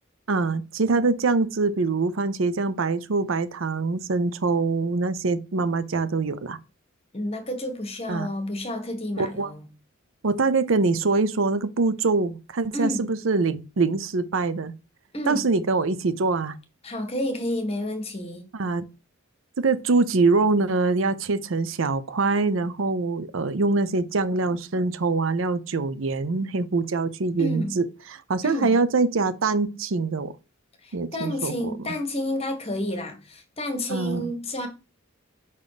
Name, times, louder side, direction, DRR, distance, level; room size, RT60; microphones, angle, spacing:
voice 1, 0.3-6.6 8.1-8.3 9.2-9.5 10.2-14.7 15.3-16.6 18.5-18.8 19.6-30.3 30.9-31.9 33.9-34.3, right 3 dB, 70° right, 0.6 m, -24 dB
voice 2, 7.1-9.7 12.7-13.1 15.1-15.5 16.8-18.5 27.4-27.8 28.4-28.8 30.8-34.7, left 1 dB, 30° left, 1.6 m, -30 dB
5.4 x 4.1 x 4.9 m
head